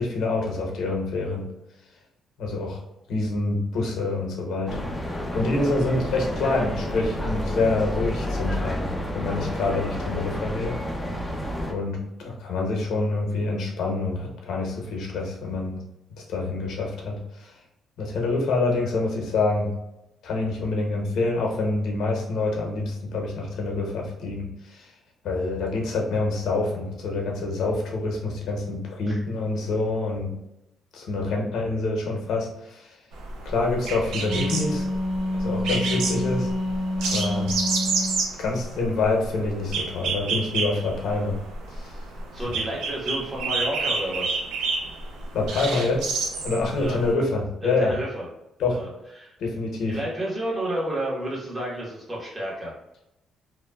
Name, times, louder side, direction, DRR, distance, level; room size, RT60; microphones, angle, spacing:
voice 1, 0.0-1.5 2.4-2.8 3.1-4.8 5.3-10.8 11.7-15.8 16.2-17.6 18.0-19.7 20.2-24.9 25.2-30.3 30.9-33.0 33.4-34.9 35.3-36.5 37.0-37.5 38.4-41.4 41.7-42.0 42.5-42.6 45.3-46.1 46.4-47.9 48.6-48.8 49.4-50.0, left 3 dB, 75° left, 0 dB, 0.8 m, -26 dB
sound 1, 4.7-11.7, left 1 dB, 10° left, 0.5 m, -30 dB
sound 2, 33.1-47.1, right 4 dB, 85° right, 0.5 m, -30 dB
Wind instrument woodwind instrument, 34.0-38.2, left 1 dB, 55° right, 1.4 m, -28 dB
voice 2, 42.3-44.4 46.8-47.0 47.6-48.3 48.7-48.9 49.2-49.3 49.9-52.8, right 1 dB, 20° right, -4 dB, 1.2 m, -30 dB
3.0 x 2.2 x 2.2 m, 0.89 s
cardioid pair, 90°, 0 cm